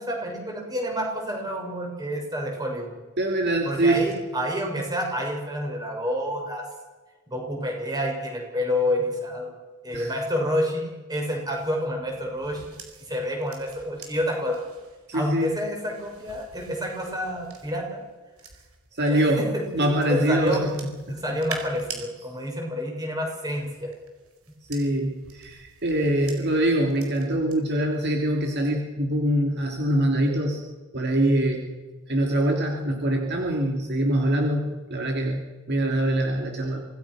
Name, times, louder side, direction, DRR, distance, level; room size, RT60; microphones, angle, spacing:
voice 1, 0.0-3.0 3.6-6.6 7.3-9.5 9.8-12.6 13.1-14.6 15.1-18.0 19.0-20.6 21.1-23.9, equal, 20° right, 1 dB, 6.6 m, -28 dB
voice 2, 3.2-4.1 9.9-10.1 15.1-15.6 18.9-21.2 24.7-30.6 30.9-31.7 32.1-36.8, right 1 dB, 50° right, 2 dB, 2.9 m, -24 dB
sound 1, 11.5-19.0 19.6-22.1 23.3-27.5 27.9-28.3, right 6 dB, 85° right, 4.6 m, -45 dB
26.5 x 19.0 x 6.3 m, 1.3 s
head